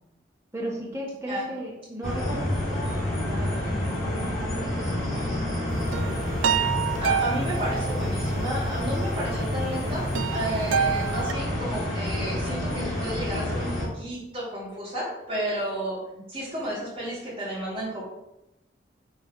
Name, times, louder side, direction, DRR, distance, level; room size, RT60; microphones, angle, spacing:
voice 1, 0.5-5.4, equal, 15° right, -5 dB, 1.8 m, -36 dB
sound 1, 2.0-13.9, left 1 dB, ahead, 2.8 m, -28 dB
sound 2, 5.7-11.3, right 7 dB, 85° right, 0.4 m, -28 dB
voice 2, 7.0-16.0 16.3-18.0, right 1 dB, 30° right, -10 dB, 2.5 m, -32 dB
5.5 x 4.3 x 5.9 m, 0.88 s
head